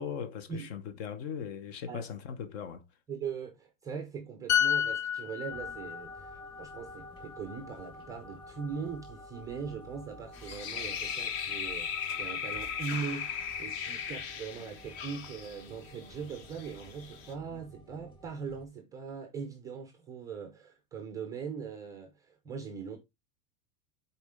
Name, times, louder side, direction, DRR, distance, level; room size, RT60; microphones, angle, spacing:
voice 1, 0.0-2.8, left 7 dB, 60° left, 1.1 m, -39 dB
voice 2, 3.1-23.0, right 6 dB, 10° right, 0.4 m, -41 dB
sound 1, 4.5-8.1 8.4-8.7, left 9 dB, 80° left, 1.1 m, -32 dB
sound 2, 5.5-18.7, equal, 15° left, 1.3 m, -51 dB
sound 3, 10.3-17.3, left 7 dB, 30° left, 0.6 m, -38 dB
7.1 x 4.3 x 3.6 m
supercardioid pair, 170°, 37 cm